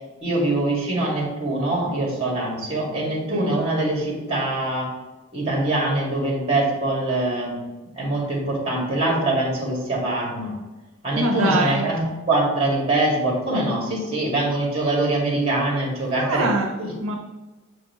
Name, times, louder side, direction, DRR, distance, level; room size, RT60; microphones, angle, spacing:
voice 1, 0.2-4.9 5.3-7.6 8.0-10.5 11.0-12.0 12.3-16.5 16.8-16.9, right 2 dB, 30° right, -3 dB, 2.3 m, -23 dB
voice 2, 11.2-11.9 16.1-16.7 17.0-17.2, right 2 dB, 75° right, 2 dB, 0.7 m, -23 dB
7.8 x 4.8 x 3.2 m, 1.1 s
head